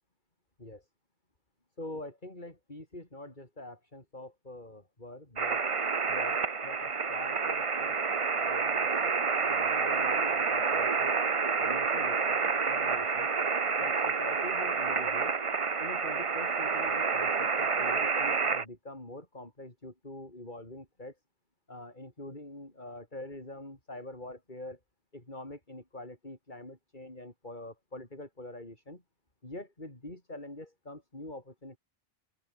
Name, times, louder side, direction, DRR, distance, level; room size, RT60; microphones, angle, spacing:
voice 1, 1.8-5.6 6.1-8.0 8.4-9.1 9.4-11.1 11.6-13.3 13.8-15.4 15.8-21.1 21.7-24.8 25.1-29.0 29.4-31.8, left 1 dB, 50° left, 5.3 m, -45 dB
sound 1, 5.4-18.6, right 5 dB, 35° right, 0.8 m, -29 dB
open air
omnidirectional pair, 1.1 m